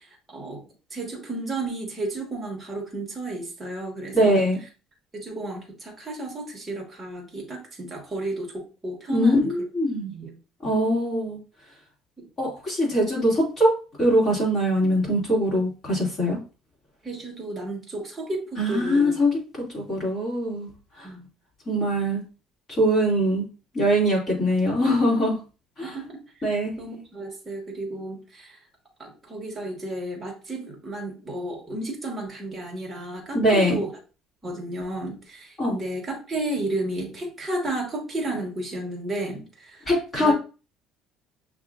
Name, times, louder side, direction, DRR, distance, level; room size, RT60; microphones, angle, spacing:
voice 1, 0.3-0.6 0.9-4.4 5.1-9.5 10.1-10.4 12.2-12.3 17.0-19.1 21.0-21.3 25.8-26.2 26.8-28.5 29.0-33.9 34.4-39.9 40.2-40.3, right 2 dB, 15° right, -1 dB, 1.4 m, -32 dB
voice 2, 4.1-4.6 9.1-10.1 10.6-11.4 12.4-16.4 18.6-19.4 19.7-20.7 21.0-21.1 21.7-22.2 22.8-23.4 23.7-25.4 25.8-26.0 26.4-26.7 33.3-33.8 35.6-35.7 39.9-40.3, equal, 25° left, -4 dB, 2.2 m, -22 dB
6.3 x 2.6 x 2.4 m, 0.33 s
cardioid pair, 150°, 0 cm